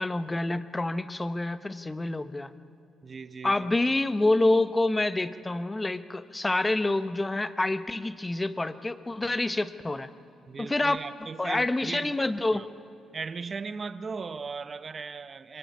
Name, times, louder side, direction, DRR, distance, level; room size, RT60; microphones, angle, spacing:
voice 1, 0.0-2.5 3.4-10.1 10.6-11.0 11.4-12.7, left 2 dB, 15° left, 12 dB, 1.0 m, -27 dB
voice 2, 3.0-3.7 10.5-12.1 12.5-12.7 13.1-15.6, right 5 dB, 40° right, 13 dB, 1.0 m, -38 dB
26.5 x 23.0 x 9.5 m, 2.5 s
cardioid pair, 90°, 0 cm